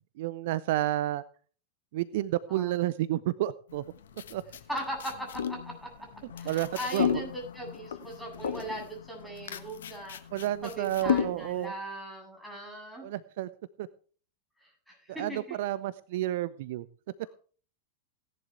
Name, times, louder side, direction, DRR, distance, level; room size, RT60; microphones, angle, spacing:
voice 1, 0.2-1.2 1.9-3.8 4.3-4.4 6.4-7.2 10.3-11.7 13.0-13.5 13.8-13.9 15.2-16.9, right 14 dB, 55° right, 17 dB, 0.5 m, -30 dB
sound 1, 3.7-11.7, left 8 dB, 60° left, 1.3 m, -34 dB
voice 2, 4.7-5.9 6.4-10.2 10.6-13.1 14.6-15.6, right 1 dB, ahead, 0 dB, 8.0 m, -39 dB
17.5 x 11.0 x 3.4 m, 0.41 s
figure-of-eight pair, 90°, 0 cm